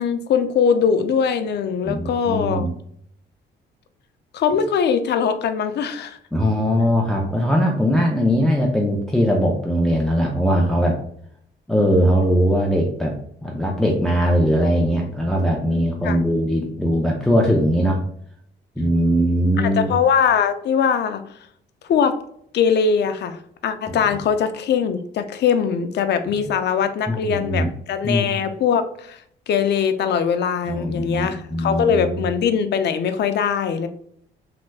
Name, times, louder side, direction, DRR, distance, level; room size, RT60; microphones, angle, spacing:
voice 1, 0.0-2.7 4.3-6.2 16.0-16.2 19.6-21.4 21.8-22.2 22.5-33.9, left 7 dB, 60° left, 9 dB, 0.4 m, -21 dB
voice 2, 1.9-2.7 6.3-11.0 11.7-13.1 13.4-18.0 18.8-19.9 23.9-24.0 27.1-27.7 28.0-28.3 30.6-32.2, equal, ahead, -1 dB, 0.5 m, -20 dB
3.3 x 2.9 x 2.2 m, 0.66 s
cardioid pair, 90°, 20 cm